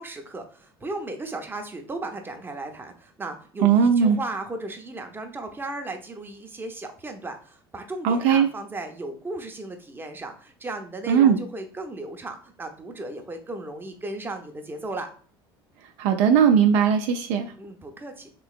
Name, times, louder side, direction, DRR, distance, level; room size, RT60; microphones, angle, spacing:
voice 1, 0.0-15.1 17.6-18.3, right 2 dB, 15° right, 4 dB, 0.7 m, -36 dB
voice 2, 3.6-4.2 8.0-8.5 11.1-11.4 16.0-17.5, right 7 dB, 65° right, 5 dB, 0.4 m, -19 dB
3.4 x 3.0 x 2.4 m, 0.43 s
hypercardioid pair, 70°, 13 cm